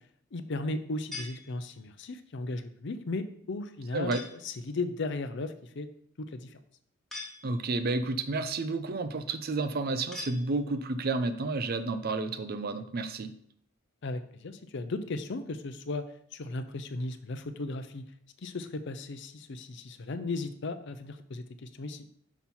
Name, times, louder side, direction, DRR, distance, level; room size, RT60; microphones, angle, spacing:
voice 1, 0.3-4.2 4.4-5.9 6.2-6.6 14.0-18.1 18.4-22.1, left 2 dB, 65° left, 10 dB, 0.6 m, -36 dB
sound 1, 1.1-2.1 4.1-4.6 7.1-7.9 10.1-11.0, left 2 dB, ahead, 1.1 m, -44 dB
voice 2, 7.4-13.3, right 3 dB, 50° right, 10 dB, 0.6 m, -31 dB
6.0 x 5.5 x 4.3 m, 0.65 s
head